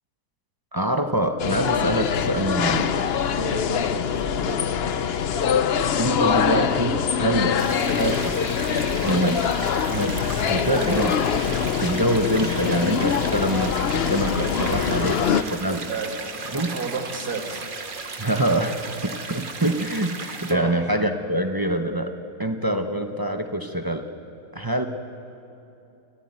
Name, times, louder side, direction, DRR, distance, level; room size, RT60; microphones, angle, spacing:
voice 1, 0.7-3.0 6.0-7.6 7.9-8.4 9.0-9.4 9.9-11.2 11.8-15.2 15.5-15.9 16.5-16.7 18.2-22.1 22.4-24.1 24.5-24.9, right 1 dB, 15° right, 6 dB, 0.8 m, -25 dB
sound 1, 1.4-15.4, left 7 dB, 50° left, 0.8 m, -24 dB
voice 2, 3.4-4.1 4.4-4.7 14.7-15.3 15.9-17.6 20.5-20.7, right 4 dB, 70° right, 2 dB, 2.8 m, -32 dB
sound 2, 7.6-20.5, right 4 dB, 35° right, 1.3 m, -35 dB
29.5 x 14.0 x 9.4 m, 2.8 s
omnidirectional pair, 1.7 m